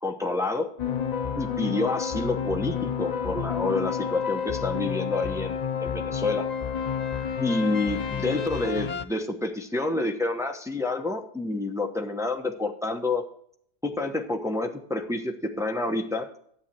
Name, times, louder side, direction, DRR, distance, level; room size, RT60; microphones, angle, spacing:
voice 1, 0.0-0.7 1.4-6.5 7.4-13.2 13.8-16.3, left 2 dB, ahead, 3 dB, 0.8 m, -28 dB
sound 1, 0.8-9.0, left 7 dB, 65° left, 0.4 m, -30 dB
11.5 x 8.2 x 4.5 m, 0.66 s
omnidirectional pair, 1.7 m